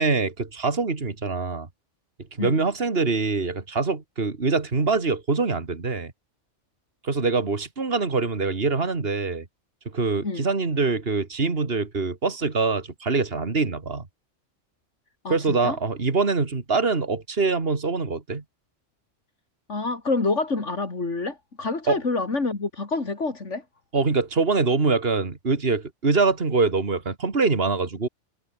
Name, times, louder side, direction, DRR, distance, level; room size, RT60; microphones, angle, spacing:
voice 1, 0.0-1.7 2.4-6.1 7.0-9.4 9.9-14.0 15.3-18.4 21.9-22.0 23.9-28.1, right 4 dB, 55° right, 2.6 m, -24 dB
voice 2, 15.2-15.8 19.7-23.6, left 3 dB, 75° left, 3.5 m, -27 dB
omnidirectional pair, 1.2 m